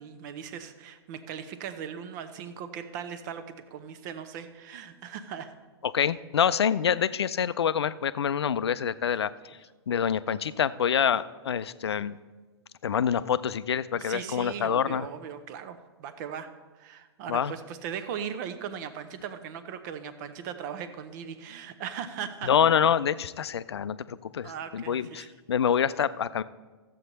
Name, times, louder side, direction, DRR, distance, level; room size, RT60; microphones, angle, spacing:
voice 1, 0.0-5.5 14.0-16.5 16.7-22.5 24.4-25.3, right 8 dB, 45° right, 9 dB, 0.9 m, -38 dB
voice 2, 5.8-9.6 9.9-12.2 12.8-15.1 17.3-17.5 22.4-26.4, left 8 dB, 70° left, 15 dB, 0.4 m, -26 dB
14.0 x 7.6 x 4.1 m, 1.3 s
figure-of-eight pair, 110°, 14 cm